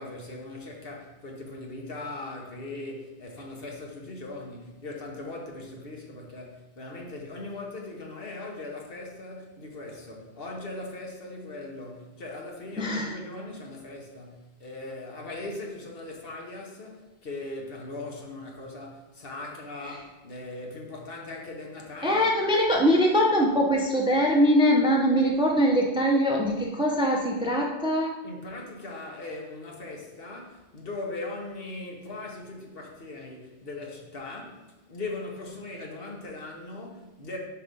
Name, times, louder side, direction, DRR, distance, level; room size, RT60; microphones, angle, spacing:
voice 1, 0.0-22.3 28.2-34.6 34.9-37.4, left 2 dB, 60° left, 1.3 m, -39 dB
voice 2, 12.8-13.1 22.0-28.1, equal, 5° right, 0.6 m, -22 dB
4.8 x 4.8 x 5.2 m
omnidirectional pair, 1.1 m